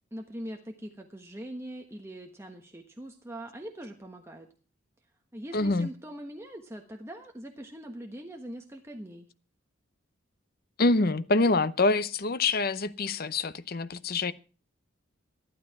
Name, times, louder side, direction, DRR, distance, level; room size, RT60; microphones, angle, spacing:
voice 1, 0.1-4.5 5.3-9.3, right 1 dB, 15° right, 1.2 m, -42 dB
voice 2, 5.5-5.9 10.8-14.3, left 3 dB, 50° left, 0.7 m, -25 dB
13.5 x 12.0 x 4.7 m
head